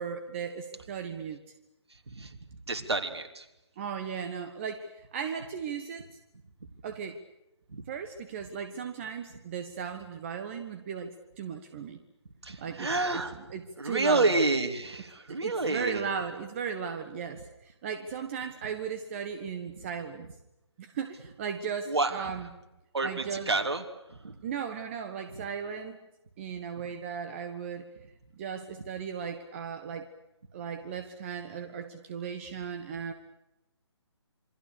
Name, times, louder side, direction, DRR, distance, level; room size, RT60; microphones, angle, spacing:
voice 1, 0.0-1.4 3.8-6.0 6.8-7.2 7.9-12.0 12.6-13.2 13.5-14.3 15.3-20.3 20.8-22.5 23.0-23.5 24.4-26.0 26.4-27.9 28.4-30.1 30.5-33.1, right 7 dB, 25° right, 7 dB, 1.4 m, -36 dB
voice 2, 2.7-3.4 7.7-7.8 12.4-13.4 13.8-16.1 21.9-22.3 22.9-23.8 24.1-24.3, right 3 dB, 60° right, 5 dB, 3.4 m, -29 dB
28.0 x 24.5 x 6.8 m, 0.93 s
figure-of-eight pair, 145°, 15 cm